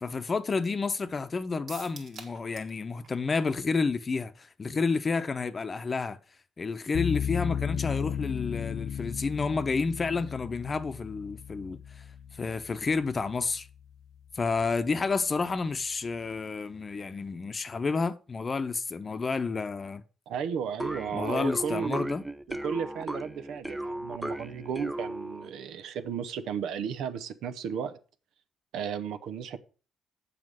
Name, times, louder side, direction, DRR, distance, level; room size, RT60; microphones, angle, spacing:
voice 1, 0.0-6.2 6.6-12.0 12.4-13.7 14.3-20.0 21.1-22.2, left 4 dB, 35° left, 0.7 m, -30 dB
sound 1, 1.7-2.8 3.0-3.1 3.5-3.6, right 4 dB, 65° right, 2.0 m, -45 dB
sound 2, 6.9-14.0, left 8 dB, 80° left, 0.5 m, -35 dB
voice 2, 20.3-22.0 22.5-28.0 28.7-29.6, right 7 dB, 85° right, 0.7 m, -34 dB
sound 3, 20.8-25.6, right 1 dB, 10° right, 0.5 m, -36 dB
7.5 x 5.1 x 6.1 m
cardioid pair, 90°, 0 cm